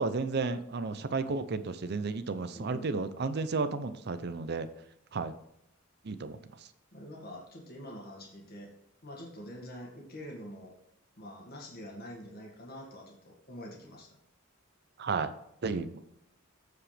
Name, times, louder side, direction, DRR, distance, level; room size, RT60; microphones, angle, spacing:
voice 1, 0.0-4.7 5.1-5.4 6.0-6.4 15.0-15.3 15.6-16.1, right 4 dB, 50° right, 12 dB, 0.5 m, -32 dB
voice 2, 2.5-3.5 6.9-8.7 9.0-10.7 11.2-14.2, equal, 45° left, -1 dB, 1.9 m, -46 dB
14.5 x 4.9 x 3.4 m, 0.77 s
head